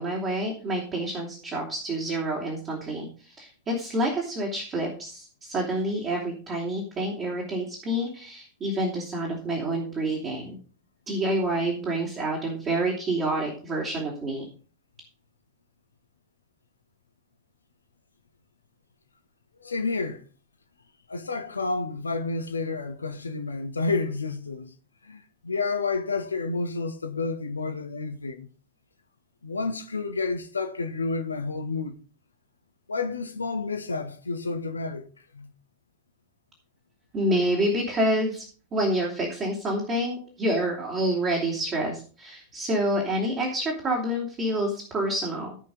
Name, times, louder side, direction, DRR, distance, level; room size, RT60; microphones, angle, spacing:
voice 1, 0.0-10.6 11.1-14.5 37.1-38.4 38.7-45.6, right 1 dB, 30° right, 3.4 m, -28 dB
voice 2, 19.6-20.2 21.1-24.7 25.0-28.5 29.4-31.9 32.9-35.1 35.3-35.5, left 3 dB, 75° left, 1.1 m, -30 dB
15.5 x 5.5 x 5.3 m
figure-of-eight pair, 90°, 0 cm